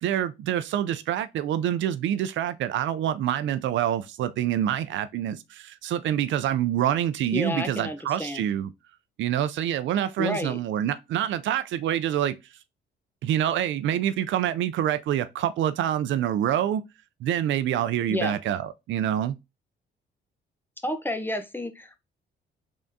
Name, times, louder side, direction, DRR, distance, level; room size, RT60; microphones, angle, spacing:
voice 1, 0.0-8.7 9.2-12.3 13.2-16.8 17.2-19.4, right 11 dB, 70° right, 0.4 m, -26 dB
voice 2, 7.3-8.4 10.2-10.6 18.1-18.4 20.8-22.0, left 1 dB, 10° left, 0.7 m, -30 dB
3.6 x 3.4 x 2.6 m
cardioid pair, 90°, 20 cm